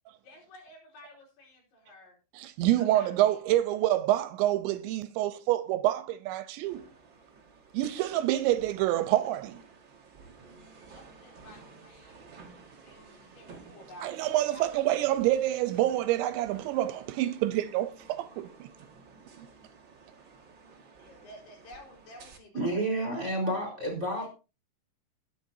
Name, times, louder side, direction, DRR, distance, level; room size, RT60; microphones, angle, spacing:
voice 1, 0.2-2.1 2.8-3.4 10.9-12.2 12.8-14.9 21.0-23.7 24.1-24.3, left 1 dB, 60° left, 6.4 m, -51 dB
voice 2, 2.6-6.8 7.7-9.6 14.0-18.7, right 14 dB, 80° right, 2.9 m, -27 dB
sound 1, 6.6-22.4, right 4 dB, 55° right, 1.3 m, -53 dB
voice 3, 22.5-24.3, right 1 dB, 20° right, 4.1 m, -30 dB
20.0 x 8.5 x 2.7 m
omnidirectional pair, 5.3 m